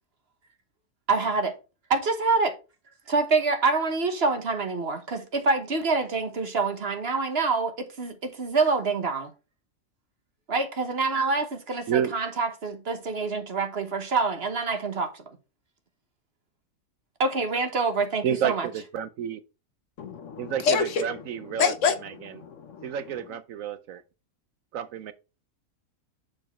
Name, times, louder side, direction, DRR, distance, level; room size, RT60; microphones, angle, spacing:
voice 1, 1.1-1.5 1.9-2.5 3.1-9.3 10.5-15.1 17.2-18.7, right 4 dB, 45° right, 1.4 m, -26 dB
voice 2, 18.2-19.4 20.4-21.7 22.0-22.5 22.8-24.0 24.7-25.1, right 9 dB, 70° right, 0.9 m, -30 dB
voice 3, 20.0-21.0 21.6-21.9 22.2-22.9, left 6 dB, 60° left, 1.0 m, -26 dB
7.0 x 5.1 x 4.3 m
omnidirectional pair, 1.6 m